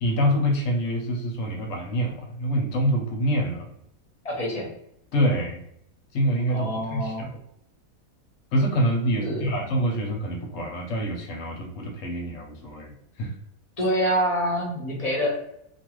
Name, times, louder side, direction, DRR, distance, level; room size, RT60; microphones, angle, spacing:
voice 1, 0.0-3.7 5.1-5.6 6.1-7.4 8.5-13.3, equal, 70° left, 1 dB, 1.0 m, -26 dB
voice 2, 4.2-4.7 6.5-7.3 9.2-9.7 13.8-15.5, equal, 30° left, -3 dB, 0.9 m, -26 dB
2.7 x 2.4 x 3.0 m, 0.75 s
omnidirectional pair, 1.5 m